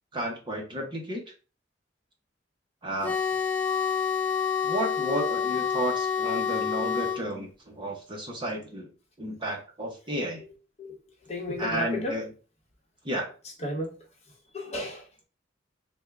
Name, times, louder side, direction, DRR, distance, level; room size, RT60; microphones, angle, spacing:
voice 1, 0.1-1.2 2.8-3.1 4.6-8.9 9.2-10.4 11.6-12.3 13.0-13.3, right 1 dB, 25° right, 0.7 m, -32 dB
sound 1, 3.0-7.2, left 7 dB, 10° left, 0.5 m, -28 dB
voice 2, 11.3-12.2 13.6-13.9 14.5-15.0, left 1 dB, 35° left, 0.9 m, -32 dB
3.4 x 2.2 x 3.4 m
head